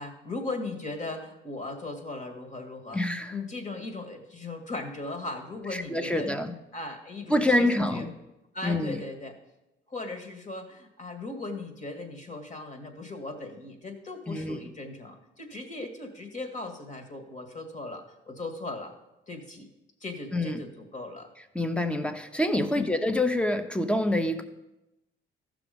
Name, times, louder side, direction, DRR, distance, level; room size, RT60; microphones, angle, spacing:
voice 1, 0.0-3.0 3.3-8.1 8.5-9.4 9.9-18.9 19.3-19.7 20.0-21.3 22.8-22.9, left 2 dB, 40° left, 4 dB, 2.1 m, -38 dB
voice 2, 2.9-3.3 5.7-6.5 7.3-8.1 8.6-9.0 14.3-14.6 20.3-20.6 21.5-24.4, left 1 dB, 5° left, 9 dB, 0.9 m, -26 dB
14.5 x 6.2 x 5.3 m, 0.94 s
cardioid pair, 90°, 20 cm